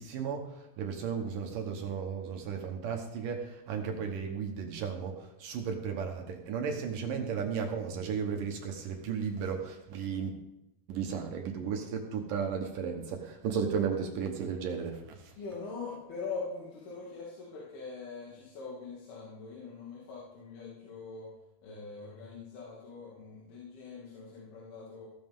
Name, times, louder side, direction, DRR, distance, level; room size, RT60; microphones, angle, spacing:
voice 1, 0.0-10.4 10.9-15.3, right 6 dB, 65° right, 4 dB, 2.4 m, -34 dB
voice 2, 15.4-21.3 21.6-25.1, left 4 dB, 70° left, -6 dB, 4.3 m, -42 dB
16.0 x 13.5 x 3.7 m, 0.91 s
omnidirectional pair, 4.7 m